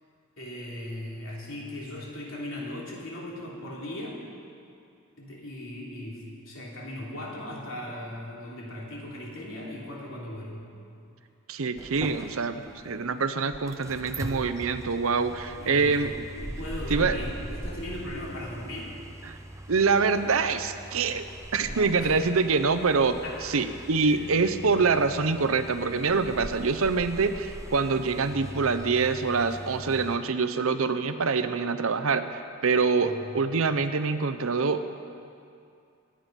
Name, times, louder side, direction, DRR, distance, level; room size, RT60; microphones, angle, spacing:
voice 1, 0.4-4.2 5.2-10.7 15.6-16.0 16.4-18.9 21.6-22.2 23.2-23.6 24.0-24.3 33.0-33.3, left 1 dB, 65° left, -4 dB, 3.3 m, -38 dB
voice 2, 11.5-16.1 16.9-17.2 19.3-19.4 19.7-21.3 21.5-34.8, right 4 dB, 70° right, 10 dB, 0.7 m, -25 dB
sound 1, 11.8-30.2, right 1 dB, 15° right, 0.6 m, -41 dB
24.0 x 8.9 x 5.3 m, 2.5 s
head